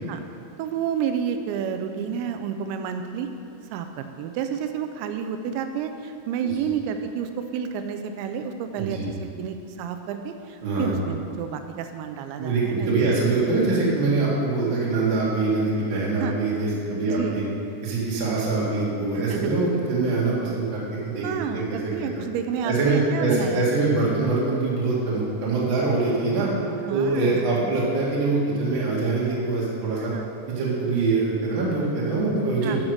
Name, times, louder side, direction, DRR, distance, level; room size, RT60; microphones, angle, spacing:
voice 1, 0.6-3.3 3.7-13.2 16.2-16.3 17.0-17.4 19.3-19.5 21.2-23.7 26.9-27.8 30.0-30.3 32.6-32.9, right 7 dB, 90° right, 7 dB, 2.9 m, -30 dB
voice 2, 10.6-10.9 12.4-17.4 17.8-21.3 21.5-21.9 22.6-26.5 26.9-30.1 30.5-32.9, right 3 dB, 50° right, -6 dB, 1.5 m, -24 dB
11.5 x 4.8 x 6.4 m, 2.6 s
omnidirectional pair, 5.0 m